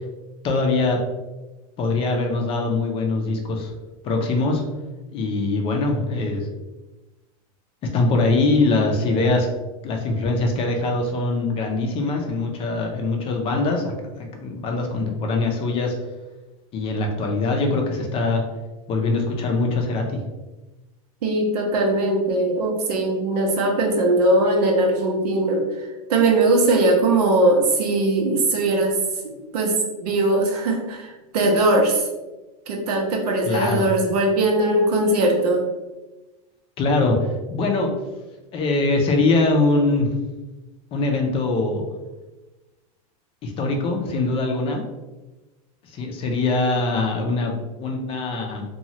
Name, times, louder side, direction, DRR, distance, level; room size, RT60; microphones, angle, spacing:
voice 1, 0.4-1.0 1.8-3.7 4.0-4.6 5.1-6.5 7.9-9.5 9.8-15.9 16.7-18.4 18.9-20.2 33.4-33.9 36.8-37.2 37.5-37.9 38.5-40.1 40.9-41.9 43.4-44.8 45.9-48.6, left 3 dB, 30° left, 2 dB, 0.5 m, -22 dB
voice 2, 21.2-29.0 29.5-32.1 32.7-35.7, right 2 dB, 85° right, 1 dB, 0.8 m, -20 dB
2.9 x 2.3 x 2.7 m, 1.1 s
supercardioid pair, 135°, 20 cm